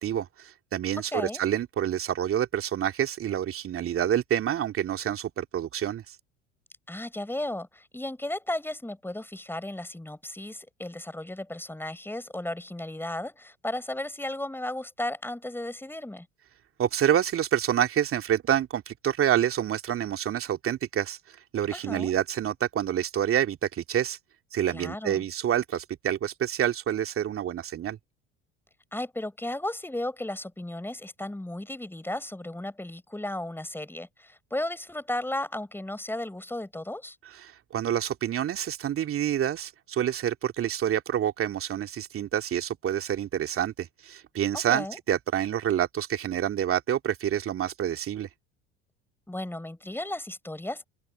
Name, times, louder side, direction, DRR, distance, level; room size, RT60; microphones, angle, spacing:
voice 1, 0.0-6.2 16.8-24.2 24.5-28.0 37.3-48.3, right 10 dB, 40° right, 2.5 m, -28 dB
voice 2, 1.1-1.4 6.9-16.3 21.7-22.1 24.7-25.2 28.9-37.2 44.5-45.0 49.3-50.9, left 1 dB, 5° left, 5.3 m, -34 dB
open air
figure-of-eight pair, 65°, 35 cm